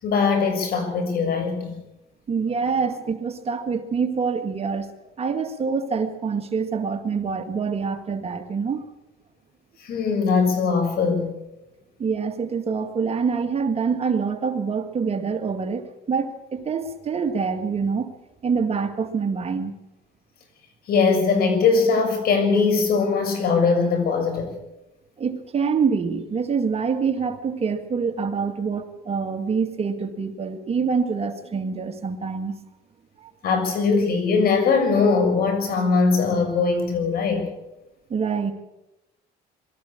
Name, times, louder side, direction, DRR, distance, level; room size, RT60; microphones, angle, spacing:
voice 1, 0.0-1.7 9.8-11.3 20.9-24.5 33.4-37.5, left 4 dB, 65° left, 5 dB, 6.8 m, -21 dB
voice 2, 2.3-4.9 5.2-8.9 12.0-18.1 18.4-19.7 25.2-32.6 33.2-33.3 38.1-38.5, right 5 dB, 35° right, 6 dB, 2.2 m, -25 dB
22.5 x 13.5 x 8.8 m, 0.95 s
cardioid pair, 110°, 17 cm